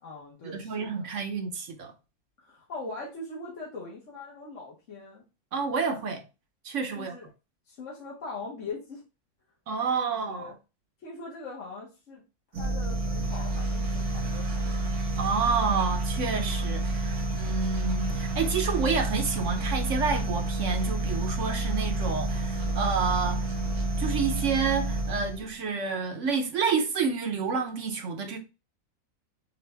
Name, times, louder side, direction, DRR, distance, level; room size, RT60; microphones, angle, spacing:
voice 1, 0.0-1.1 2.4-5.2 6.9-7.3 7.7-9.0 10.1-10.5 11.0-12.2 12.5-14.9, left 3 dB, 60° left, 1.5 m, -41 dB
voice 2, 0.5-1.9 5.5-6.2 6.6-7.2 9.7-10.5 15.2-23.5 24.0-28.4, right 5 dB, 60° right, 1.0 m, -29 dB
sound 1, 12.5-25.5, right 2 dB, 80° right, 1.6 m, -29 dB
sound 2, 16.8-25.0, left 2 dB, 40° left, 0.8 m, -44 dB
6.6 x 2.4 x 3.3 m
omnidirectional pair, 1.6 m